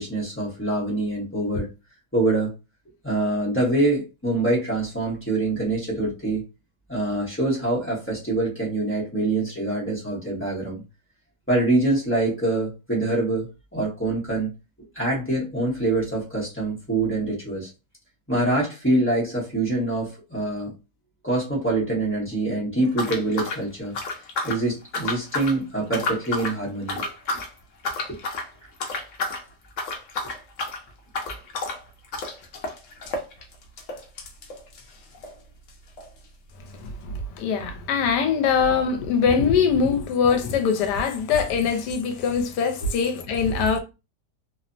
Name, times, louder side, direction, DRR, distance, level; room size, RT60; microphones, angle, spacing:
voice 1, 0.0-1.7 2.1-2.5 3.0-6.4 6.9-10.8 11.5-14.5 14.8-17.7 18.3-20.7 21.2-23.9 24.4-27.1 28.1-28.2 42.8-42.9, right 2 dB, 10° left, 0.6 m, -25 dB
sound 1, 22.9-24.6 24.9-25.6 25.9-26.6 26.9-27.5 27.8-28.5 28.8-29.4 29.7-35.4 35.7-35.8 36.0-36.1 36.7-36.8, left 3 dB, 60° left, 0.8 m, -31 dB
voice 2, 36.8-43.8, left 6 dB, 80° left, 1.2 m, -22 dB
3.1 x 2.0 x 2.5 m
omnidirectional pair, 1.8 m